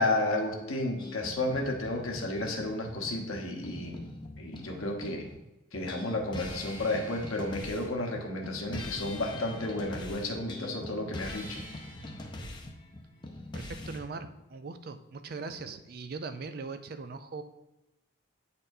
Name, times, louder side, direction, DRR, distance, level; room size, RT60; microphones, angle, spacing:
voice 1, 0.0-4.1 4.4-5.3 5.7-11.6, left 2 dB, 90° left, 1 dB, 1.1 m, -32 dB
sound 1, 1.0-5.4 5.7-14.0, left 2 dB, 20° left, 0.5 m, -42 dB
voice 2, 13.5-17.4, right 4 dB, 45° right, 9 dB, 0.4 m, -40 dB
8.6 x 4.2 x 2.7 m, 0.98 s
head